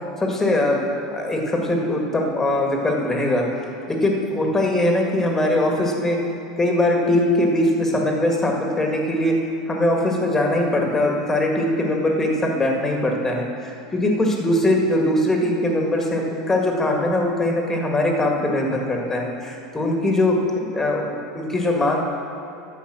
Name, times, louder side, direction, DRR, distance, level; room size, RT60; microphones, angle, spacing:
voice 1, 0.2-0.8 1.1-3.4 3.9-6.2 6.6-9.3 9.7-22.0, left 1 dB, 15° left, 1 dB, 1.9 m, -21 dB
10.5 x 7.1 x 6.3 m, 2.7 s
figure-of-eight pair, 80°, 2 cm